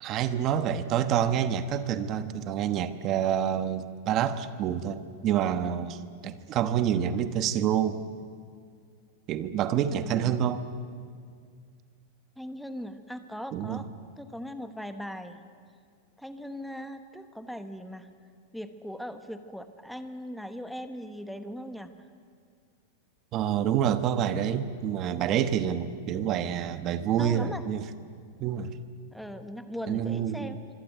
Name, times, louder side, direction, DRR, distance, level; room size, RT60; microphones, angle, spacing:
voice 1, 0.0-8.0 9.3-10.6 13.5-13.8 23.3-27.8 28.4-28.8 29.9-30.6, right 9 dB, 25° right, 11 dB, 1.1 m, -27 dB
voice 2, 9.9-10.4 12.4-13.9 14.2-15.4 16.2-18.1 18.5-21.9 27.2-27.6 29.1-30.6, equal, ahead, 8 dB, 1.1 m, -39 dB
25.0 x 25.0 x 9.2 m, 2.1 s
supercardioid pair, 180°, 0 cm